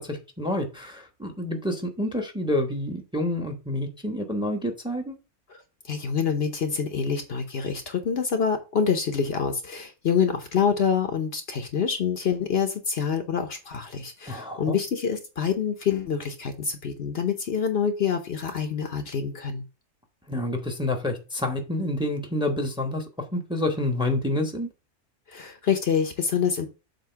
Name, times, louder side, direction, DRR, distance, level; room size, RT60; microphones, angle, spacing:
voice 1, 0.0-5.1 14.3-14.8 20.3-23.0 23.3-24.7, left 1 dB, 5° right, 4 dB, 1.0 m, -28 dB
voice 2, 5.9-19.6 25.3-26.7, left 7 dB, 55° left, 6 dB, 1.0 m, -26 dB
7.8 x 2.9 x 5.6 m, 0.31 s
omnidirectional pair, 1.3 m